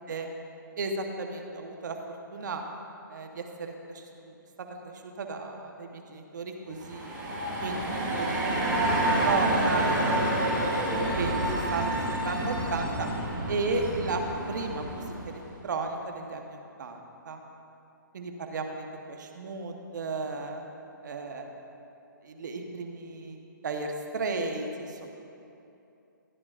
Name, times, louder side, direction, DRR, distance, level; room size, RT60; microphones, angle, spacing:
voice 1, 0.8-2.6 3.1-4.3 5.2-7.1 7.6-11.3 11.7-11.8 12.2-13.1 13.5-14.2 14.5-17.4 18.1-20.7 21.0-21.5 22.2-23.4 23.6-25.1, right 3 dB, 60° right, 3 dB, 1.1 m, -34 dB
sound 1, 6.7-15.4, right 1 dB, 15° right, 2.4 m, -28 dB
13.5 x 10.5 x 2.5 m, 2.8 s
hypercardioid pair, 155°, 11 cm